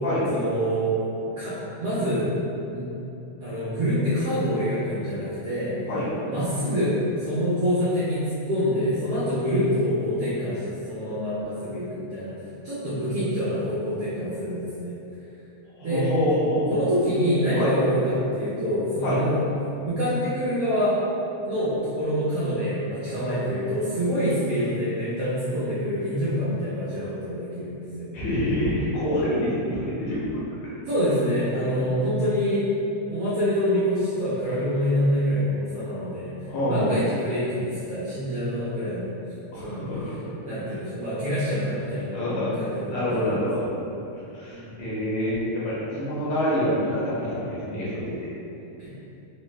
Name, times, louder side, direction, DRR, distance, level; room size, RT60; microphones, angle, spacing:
voice 1, 0.3-2.3 2.7-2.9 3.4-5.8 6.3-12.3 12.6-15.0 15.8-16.1 16.7-19.5 19.8-21.0 21.4-28.1 30.8-32.7 33.1-36.3 36.6-39.1 39.6-39.9 40.4-42.2 42.5-43.5 44.5-45.0 48.8-48.9, equal, 85° right, -11 dB, 1.2 m, -26 dB
voice 2, 15.8-16.7 17.5-17.7 19.0-19.2 28.1-30.4 31.6-31.7 36.5-37.0 39.5-40.2 40.7-40.8 42.1-42.5 42.9-43.7 44.3-48.3, equal, 70° left, -9 dB, 1.8 m, -26 dB
4.9 x 2.0 x 2.2 m, 2.8 s
omnidirectional pair, 3.4 m